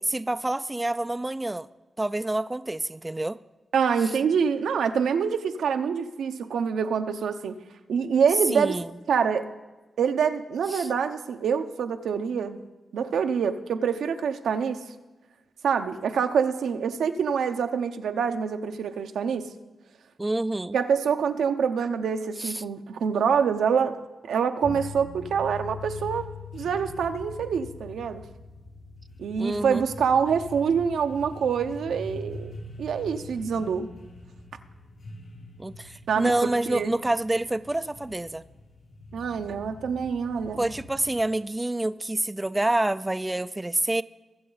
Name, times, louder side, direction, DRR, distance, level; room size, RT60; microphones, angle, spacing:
voice 1, 0.1-1.7 2.0-3.4 8.5-8.9 10.7-10.9 20.2-20.8 22.4-22.6 29.4-29.8 35.6-38.4 40.6-44.0, right 1 dB, 15° right, 13 dB, 0.3 m, -27 dB
voice 2, 3.7-7.6 7.9-8.8 9.1-9.5 10.0-12.6 12.9-14.8 15.6-19.5 20.7-24.0 24.3-26.3 26.5-28.2 29.2-33.9 36.1-36.9 39.1-40.7, right 6 dB, 90° right, 7 dB, 0.8 m, -26 dB
sound 1, 24.6-41.4, left 2 dB, 75° left, 2.4 m, -43 dB
21.5 x 7.7 x 4.0 m, 1.2 s
cardioid pair, 85°, 0 cm